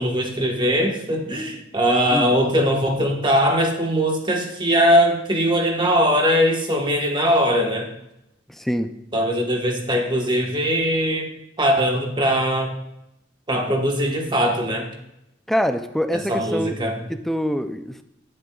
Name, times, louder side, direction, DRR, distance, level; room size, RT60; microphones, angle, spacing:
voice 1, 0.0-7.9 9.1-11.3 11.6-12.7 13.5-14.9 16.1-17.0, equal, 25° right, 2 dB, 1.3 m, -21 dB
voice 2, 8.6-8.9 15.5-16.7 17.3-18.0, equal, ahead, 9 dB, 0.4 m, -24 dB
16.5 x 7.8 x 2.3 m, 0.84 s
head